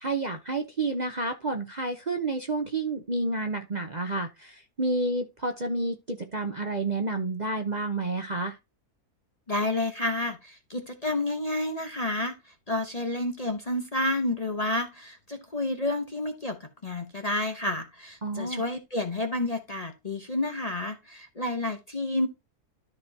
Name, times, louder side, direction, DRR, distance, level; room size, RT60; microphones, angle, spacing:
voice 1, 0.0-8.6 18.2-18.6, right 2 dB, 35° right, 0.8 m, -30 dB
voice 2, 9.5-22.3, left 2 dB, 30° left, 0.9 m, -30 dB
13.0 x 4.6 x 2.8 m
omnidirectional pair, 1.6 m